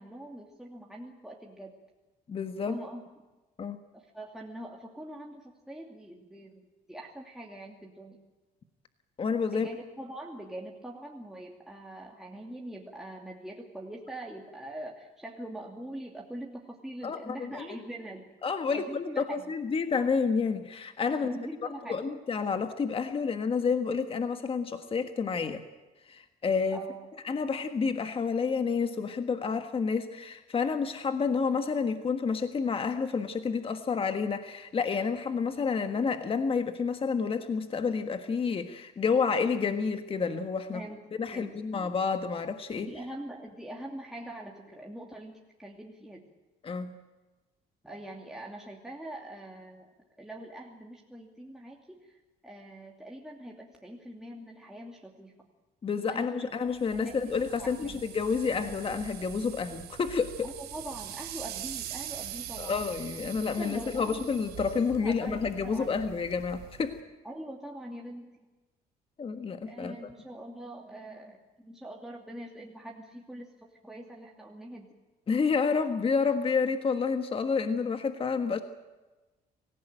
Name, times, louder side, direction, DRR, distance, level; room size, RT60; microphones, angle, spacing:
voice 1, 0.0-1.8 2.7-3.0 3.9-8.2 9.5-18.3 18.7-19.5 21.1-22.0 26.7-27.0 40.7-41.0 41.3-41.9 42.7-46.3 47.8-49.9 50.2-55.3 56.0-56.5 56.9-58.0 60.4-62.8 63.4-64.3 65.0-66.0 67.2-68.4 69.7-74.9, right 1 dB, 5° right, -2 dB, 2.7 m, -43 dB
voice 2, 2.3-2.8 3.6-3.8 9.2-9.7 17.0-17.7 18.4-21.4 21.9-25.6 26.1-26.8 27.2-40.8 41.2-42.9 46.6-47.0 55.8-60.5 62.6-67.0 69.2-69.9 75.3-78.6, left 5 dB, 35° left, 8 dB, 1.5 m, -29 dB
sound 1, 56.7-67.0, right 11 dB, 75° right, 4.5 m, -43 dB
25.0 x 16.0 x 9.1 m, 1.2 s
cardioid pair, 110°, 17 cm